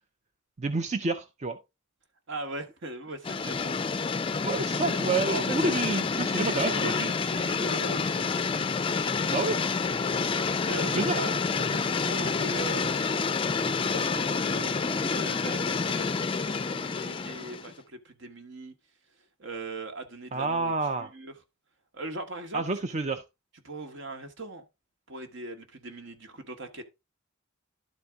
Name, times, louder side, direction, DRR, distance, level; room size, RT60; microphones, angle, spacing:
voice 1, 0.6-1.6 4.4-6.9 9.3-9.6 10.9-11.2 20.3-21.1 22.5-23.2, right 3 dB, 35° right, 0.5 m, -29 dB
voice 2, 2.3-3.7 5.2-5.7 6.3-8.7 10.6-13.1 13.8-18.7 19.4-21.3 21.9-22.6 23.6-24.6 25.1-26.8, right 2 dB, 65° right, 1.3 m, -39 dB
sound 1, 3.2-17.7, left 5 dB, 25° left, 0.4 m, -28 dB
11.5 x 4.1 x 3.5 m
head